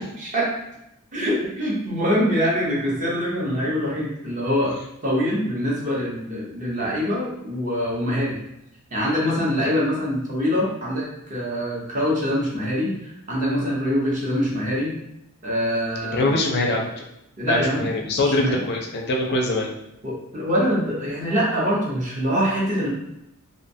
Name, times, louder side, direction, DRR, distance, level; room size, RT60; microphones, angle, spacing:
voice 1, 0.2-0.5 1.1-4.8 5.0-8.4 8.9-14.9 15.4-16.3 17.4-17.9 18.2-18.6 20.0-22.9, equal, 35° right, -4 dB, 0.7 m, -24 dB
voice 2, 16.1-17.1 17.4-19.7, left 2 dB, 45° left, 1 dB, 0.4 m, -23 dB
2.6 x 2.1 x 2.6 m, 0.83 s
head